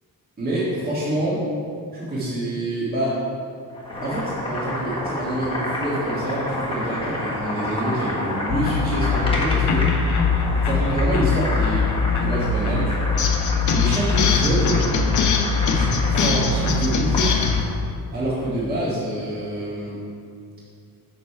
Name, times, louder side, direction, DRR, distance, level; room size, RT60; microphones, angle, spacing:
voice 1, 0.4-1.4 1.9-3.2 4.0-10.2 10.6-13.2 13.7-14.8 15.7-17.4 18.1-20.0, right 1 dB, 25° right, -10 dB, 1.7 m, -26 dB
Boiling, 3.7-17.8, left 1 dB, 15° left, 1.3 m, -30 dB
sound 1, 8.5-17.6, left 5 dB, 55° left, 0.7 m, -21 dB
6.7 x 6.4 x 4.4 m, 2.4 s
wide cardioid pair, 140°, 35 cm